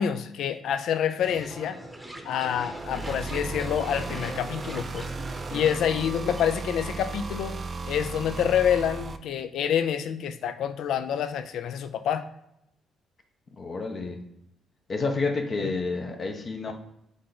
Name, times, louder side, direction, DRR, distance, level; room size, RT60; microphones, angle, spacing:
voice 1, 0.0-1.8 2.2-5.1 5.5-7.5 7.9-12.2 15.6-15.7 16.7-16.8, left 9 dB, 75° left, 10 dB, 0.4 m, -27 dB
sound 1, 1.2-6.4, right 1 dB, 10° right, 0.8 m, -40 dB
sound 2, 2.7-9.2, right 4 dB, 40° right, 0.4 m, -35 dB
voice 2, 13.6-14.2 14.9-16.7, left 3 dB, 45° left, 3 dB, 0.7 m, -29 dB
3.9 x 3.3 x 3.9 m, 0.81 s
cardioid pair, 75°, 0 cm